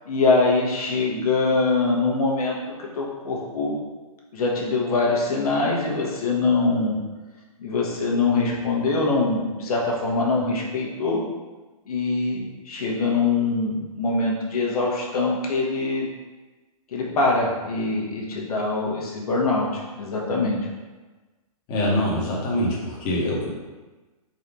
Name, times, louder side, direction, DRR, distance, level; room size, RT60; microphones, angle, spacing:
voice 1, 0.1-3.8 4.3-7.0 7.6-11.2 11.9-16.1 16.9-20.6, left 3 dB, 75° left, -3 dB, 1.2 m, -23 dB
voice 2, 21.7-23.5, left 1 dB, 25° left, -5 dB, 1.0 m, -24 dB
4.1 x 2.7 x 4.7 m, 1.2 s
hypercardioid pair, 160°, 19 cm